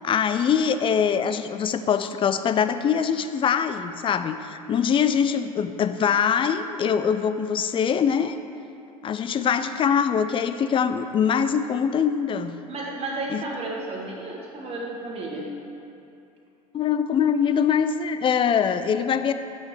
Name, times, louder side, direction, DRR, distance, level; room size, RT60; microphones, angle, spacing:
voice 1, 0.0-8.4 9.0-12.5 13.3-13.4 16.7-19.3, left 7 dB, 30° left, 10 dB, 0.4 m, -23 dB
voice 2, 12.7-15.6, right 2 dB, 35° right, -2 dB, 1.5 m, -32 dB
10.5 x 6.2 x 3.2 m, 2.7 s
hypercardioid pair, 70°, 18 cm